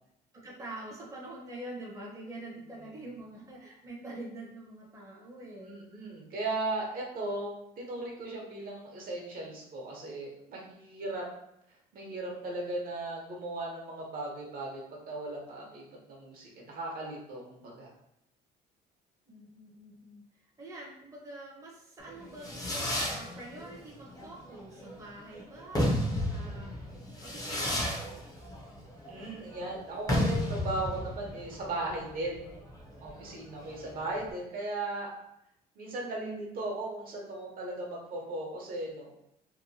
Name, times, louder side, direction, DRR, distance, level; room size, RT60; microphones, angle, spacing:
voice 1, 0.3-5.8 19.3-26.7 27.2-28.1, right 1 dB, 20° right, -3 dB, 0.7 m, -46 dB
voice 2, 5.6-11.2 11.9-17.9 29.1-32.5 33.0-35.1 35.8-39.1, right 2 dB, 60° right, -1 dB, 0.9 m, -37 dB
Fireworks, 22.1-34.3, left 1 dB, 20° left, 0.6 m, -33 dB
2.9 x 2.2 x 2.6 m, 0.79 s
cardioid pair, 110°, 17 cm